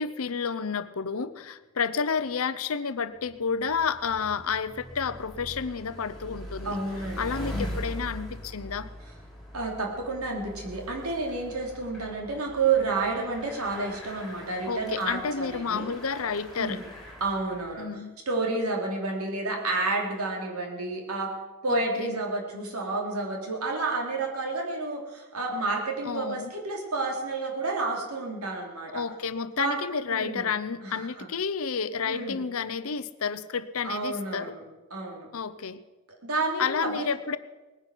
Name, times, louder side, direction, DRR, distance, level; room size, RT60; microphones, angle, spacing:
voice 1, 0.0-6.8 7.2-8.9 14.7-16.8 17.8-18.2 21.7-22.2 26.0-26.5 28.9-34.5 35.3-35.8 36.6-37.4, left 5 dB, 70° left, 14 dB, 0.7 m, -30 dB
Bicycle, 3.2-17.8, equal, ahead, 3.1 m, -42 dB
voice 2, 6.6-7.8 9.5-15.9 16.6-16.8 17.2-17.9 18.3-21.3 21.6-29.0 29.6-29.8 30.1-30.5 30.8-31.3 32.0-32.4 33.8-34.6 34.9-35.3 36.2-37.1, right 3 dB, 85° right, 1 dB, 3.1 m, -30 dB
19.5 x 9.9 x 6.2 m, 1.2 s
head